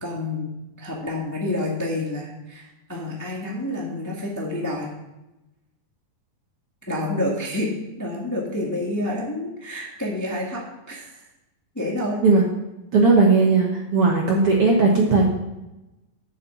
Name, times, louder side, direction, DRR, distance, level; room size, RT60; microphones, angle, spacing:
voice 1, 0.0-0.5 0.8-4.9 6.9-7.7 8.0-11.2 11.7-12.2, left 1 dB, 15° left, -2 dB, 0.7 m, -28 dB
voice 2, 12.9-15.3, right 3 dB, 60° right, -1 dB, 1.6 m, -17 dB
8.6 x 7.1 x 7.1 m, 0.98 s
omnidirectional pair, 4.1 m